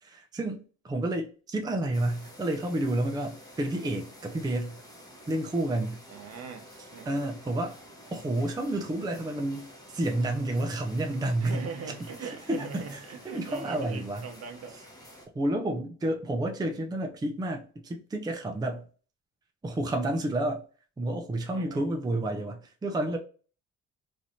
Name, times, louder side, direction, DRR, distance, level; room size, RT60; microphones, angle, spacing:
voice 1, 0.0-4.8 5.3-6.0 7.1-7.8 8.1-11.6 12.2-13.0 13.2-14.3 15.3-18.9 19.6-20.6 21.0-23.2, right 1 dB, 15° right, 0.5 m, -30 dB
sound 1, 1.9-15.3, equal, 10° left, 0.9 m, -50 dB
voice 2, 6.1-7.2 11.4-14.7 21.5-21.8, right 5 dB, 55° right, 0.8 m, -41 dB
3.1 x 2.5 x 2.7 m
cardioid pair, 90°, 30 cm